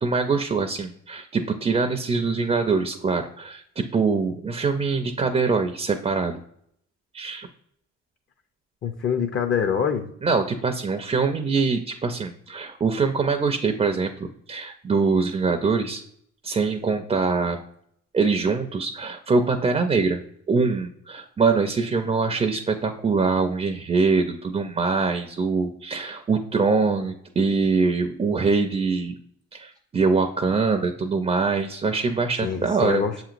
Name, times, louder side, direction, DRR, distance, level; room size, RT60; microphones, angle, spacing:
voice 1, 0.0-6.4 7.1-7.5 10.2-16.0 16.4-17.6 18.1-20.2 20.5-29.2 29.5-33.0, right 4 dB, 20° right, 6 dB, 0.4 m, -23 dB
voice 2, 8.8-10.1 32.4-33.2, left 7 dB, 40° left, 5 dB, 0.5 m, -25 dB
7.1 x 2.9 x 2.4 m, 0.68 s
cardioid pair, 90°, 30 cm